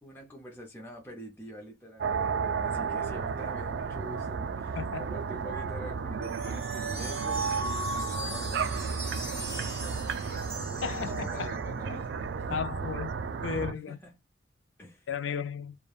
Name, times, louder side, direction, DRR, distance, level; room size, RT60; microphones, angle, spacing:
voice 1, 0.0-10.2 10.7-12.8 13.9-14.1 14.8-15.1, equal, 10° left, 0.5 m, -46 dB
sound 1, 2.0-13.7, right 5 dB, 65° right, 0.3 m, -33 dB
voice 2, 4.8-5.1 10.8-11.6 11.9-12.0 12.5-13.1 13.4-14.0 15.1-15.8, left 6 dB, 85° left, 0.4 m, -34 dB
sound 2, 6.2-11.6, right 1 dB, 15° right, 1.5 m, -42 dB
3.2 x 2.1 x 2.3 m
head